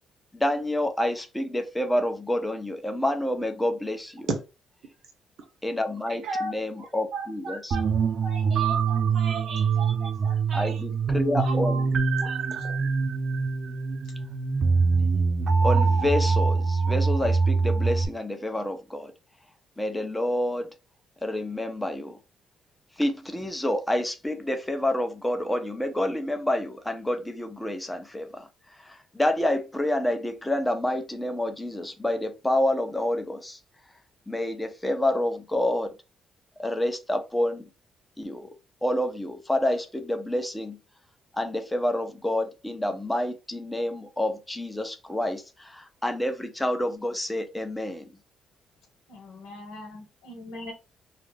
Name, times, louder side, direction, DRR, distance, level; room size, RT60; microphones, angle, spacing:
voice 1, 0.3-4.3 5.6-7.8 10.5-11.8 15.0-15.2 15.6-19.1 19.8-20.7 21.2-22.2 23.0-28.5 28.8-33.6 34.3-35.9 36.6-37.7 38.2-38.5 38.8-40.8 41.3-48.1, left 1 dB, 10° left, 0.6 m, -28 dB
voice 2, 6.1-7.9 8.2-10.8 11.4-12.8, right 3 dB, 70° right, 0.8 m, -37 dB
sound 1, 7.7-18.1, right 4 dB, 55° right, 0.4 m, -24 dB
voice 3, 49.1-50.7, left 1 dB, 90° left, 1.1 m, -41 dB
2.4 x 2.0 x 3.2 m
cardioid pair, 90°, 0 cm